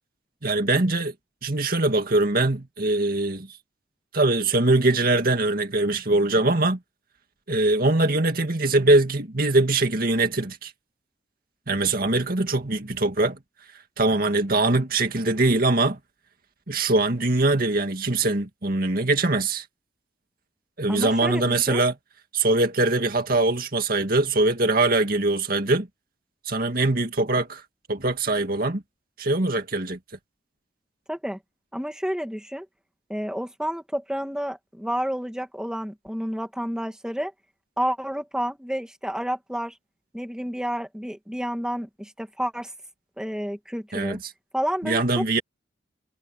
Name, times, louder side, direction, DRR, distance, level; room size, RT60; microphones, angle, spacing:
voice 1, 0.4-1.1 1.4-3.5 4.1-6.8 7.5-10.7 11.7-13.4 14.0-16.0 16.7-19.6 20.8-21.9 22.3-25.9 26.5-27.6 27.9-28.8 29.2-30.0 43.9-44.2 44.8-45.4, right 2 dB, 50° right, 2.2 m, -22 dB
voice 2, 20.9-21.8 31.1-31.4 31.7-32.7 33.1-37.3 37.8-39.8 40.1-42.7 43.2-44.2 44.5-45.4, equal, 5° right, 2.3 m, -30 dB
head